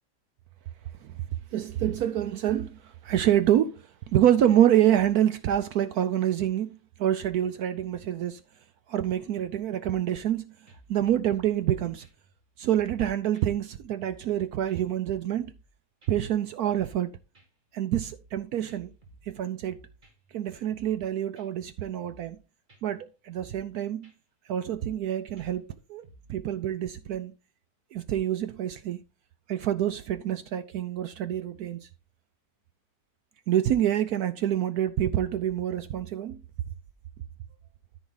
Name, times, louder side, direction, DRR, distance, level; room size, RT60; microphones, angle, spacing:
voice 1, 1.5-8.4 8.9-10.5 10.9-12.1 12.6-15.5 16.1-17.1 17.7-18.9 19.2-19.8 20.3-22.4 22.8-24.1 24.5-26.0 26.3-27.3 27.9-29.0 29.5-31.9 33.5-36.4, right 11 dB, 70° right, 1.0 m, -27 dB
sound 1, 10.7-13.0 13.3-13.5 13.8-14.4 14.7-15.7 16.0-16.1 16.5-17.1 17.3-18.4 18.7-20.4 20.7-21.1 21.4-21.5 21.8-22.4 22.7-23.0 23.4-23.7 24.0-24.1 24.5-25.1 25.4-26.4, right 2 dB, 25° right, 2.0 m, -56 dB
13.5 x 4.8 x 3.9 m
omnidirectional pair, 1.9 m